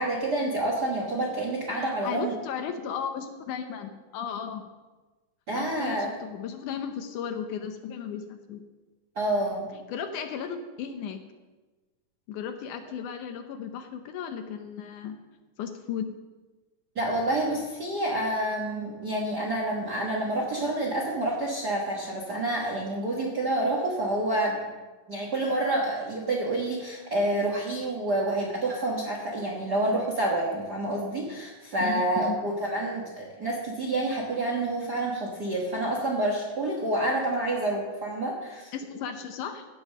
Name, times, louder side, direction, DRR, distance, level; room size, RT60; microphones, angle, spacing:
voice 1, 0.0-2.3 5.5-6.1 9.1-9.6 16.9-24.6 25.1-38.7, right 1 dB, 50° right, -2 dB, 1.2 m, -28 dB
voice 2, 1.7-4.6 5.6-8.6 9.9-11.2 12.3-15.2 15.6-16.2 31.8-32.4 38.7-39.7, left 7 dB, 75° left, 7 dB, 2.1 m, -35 dB
15.5 x 5.4 x 6.4 m, 1.2 s
omnidirectional pair, 3.9 m